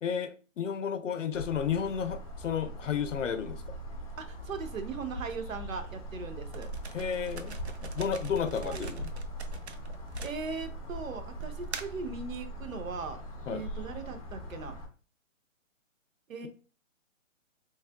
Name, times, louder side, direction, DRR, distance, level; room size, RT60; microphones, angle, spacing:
voice 1, 0.0-3.6 6.9-7.6 8.0-9.1 13.5-13.6, left 7 dB, 70° left, 0.5 m, -32 dB
sound 1, 1.3-14.9, right 1 dB, 25° left, 0.6 m, -41 dB
voice 2, 4.2-6.7 8.5-8.9 10.2-13.2 13.5-14.8 16.3-16.5, right 4 dB, 85° right, 0.8 m, -39 dB
sound 2, 6.5-10.8 11.4-12.1, right 4 dB, 55° right, 0.5 m, -42 dB
3.6 x 3.2 x 2.2 m
hypercardioid pair, 180°, 39 cm